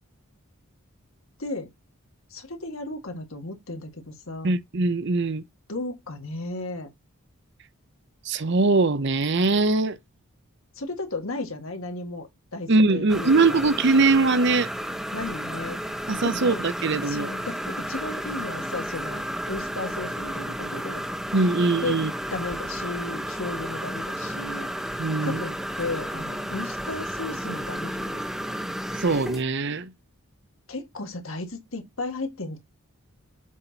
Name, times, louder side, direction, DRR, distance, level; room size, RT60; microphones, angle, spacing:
voice 1, 1.4-1.7 2.3-4.6 5.7-6.9 10.8-13.6 15.1-15.8 16.2-16.6 17.1-21.0 21.8-22.0 22.3-24.7 25.2-28.2 30.7-32.6, left 2 dB, 70° left, 1.8 m, -34 dB
voice 2, 4.4-5.4 8.2-10.0 12.7-14.7 16.1-17.3 21.3-22.1 25.0-25.4 29.0-29.9, right 3 dB, 55° right, 0.7 m, -22 dB
sound 1, 13.1-29.4, equal, ahead, 0.8 m, -32 dB
7.4 x 4.2 x 4.1 m
head